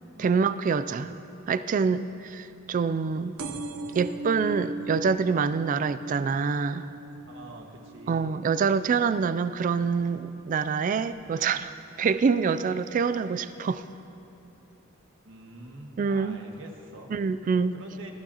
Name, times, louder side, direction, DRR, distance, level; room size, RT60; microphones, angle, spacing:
voice 1, 0.2-1.1 1.5-3.3 3.9-6.9 8.1-11.7 12.0-13.8 16.0-16.4 17.1-17.7, right 5 dB, 40° right, 13 dB, 0.3 m, -26 dB
sound 1, 3.4-10.6 11.1-11.6 12.4-12.5 12.7-12.8 13.0-13.1, right 3 dB, 85° right, 0.7 m, -39 dB
voice 2, 7.3-8.4 15.2-17.1 17.7-18.1, right 1 dB, 65° right, 1 dB, 1.6 m, -45 dB
20.0 x 14.0 x 2.9 m, 2.9 s
head